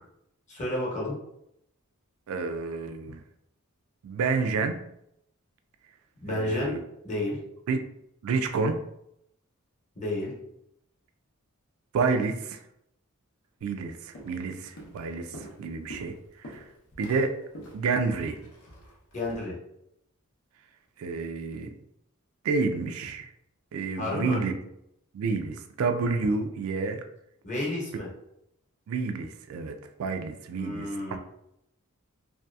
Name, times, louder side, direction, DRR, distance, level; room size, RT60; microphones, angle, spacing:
voice 1, 0.5-1.1 6.2-6.7 7.0-7.4 9.9-10.3 19.1-19.5 23.9-24.4 27.4-28.1 30.5-31.2, left 1 dB, 35° left, -5 dB, 0.9 m, -31 dB
voice 2, 2.3-3.2 4.0-4.7 6.3-6.8 7.7-7.9 8.2-8.7 11.9-12.6 13.6-16.6 17.0-17.3 17.7-18.4 21.0-21.7 22.4-23.3 23.7-24.5 25.1-27.0 28.9-30.9, right 4 dB, 70° right, 7 dB, 0.3 m, -29 dB
Walk footsteps, 13.6-13.8 14.1-14.5 14.8-19.4, equal, 75° left, 0.7 m, -46 dB
2.7 x 2.3 x 2.2 m, 0.78 s
head